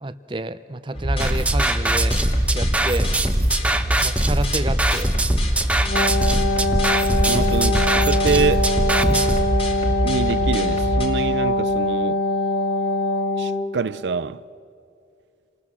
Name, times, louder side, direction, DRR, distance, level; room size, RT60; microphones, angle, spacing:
voice 1, 0.0-2.2 2.5-3.1 4.0-5.1, right 2 dB, 25° right, 0.6 m, -29 dB
sound 1, 0.9-11.1, equal, 30° left, 2.8 m, -24 dB
sound 2, 1.2-9.4, right 1 dB, 10° right, 0.9 m, -22 dB
Wind instrument woodwind instrument, 5.8-13.8, left 2 dB, 75° left, 2.0 m, -23 dB
voice 2, 7.2-8.7 10.0-12.2 13.4-14.4, right 5 dB, 80° right, 0.5 m, -25 dB
28.5 x 20.0 x 7.4 m
head